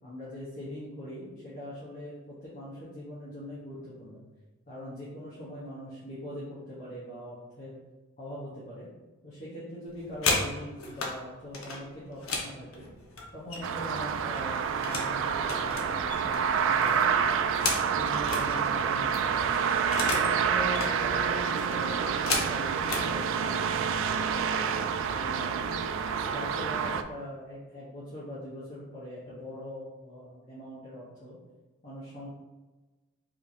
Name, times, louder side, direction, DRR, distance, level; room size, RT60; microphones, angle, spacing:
voice 1, 0.0-4.2 4.7-7.8 8.2-8.9 9.2-12.9 13.3-17.4 17.9-19.6 20.0-25.7 26.2-31.4 31.8-32.3, equal, 40° left, -9 dB, 1.2 m, -42 dB
sound 1, 9.9-11.1 11.5-13.9 14.2-15.1 15.4-18.5 18.8-18.9 19.1-20.3 20.6-20.9 21.5-23.1 23.9-24.1 24.4-24.8 25.1-25.6, left 3 dB, 80° left, 0.9 m, -33 dB
sound 2, 13.6-27.0, right 7 dB, 65° right, 0.3 m, -28 dB
5.0 x 3.6 x 2.8 m, 1.2 s
head